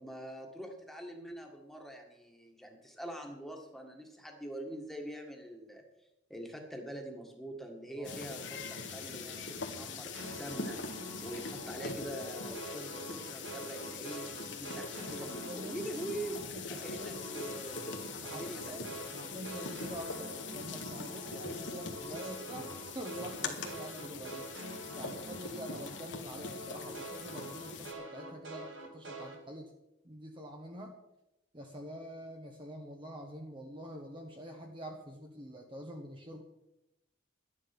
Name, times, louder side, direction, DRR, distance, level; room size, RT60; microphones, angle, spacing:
voice 1, 0.0-5.8 6.3-10.8 11.2-16.4 16.7-18.9 25.5-25.6, right 1 dB, ahead, 1 dB, 1.8 m, -44 dB
sound 1, 8.0-27.9, left 4 dB, 65° left, 1.7 m, -43 dB
voice 2, 9.0-9.5 15.1-15.9 16.5-16.7 17.0-17.2 18.2-24.5 24.9-29.7 30.0-31.0 31.5-36.4, equal, 25° right, 2 dB, 1.1 m, -46 dB
sound 2, 10.1-16.5 16.7-26.1 26.3-29.4, right 1 dB, 80° right, 2.5 m, -45 dB
12.0 x 10.0 x 6.0 m, 0.92 s
head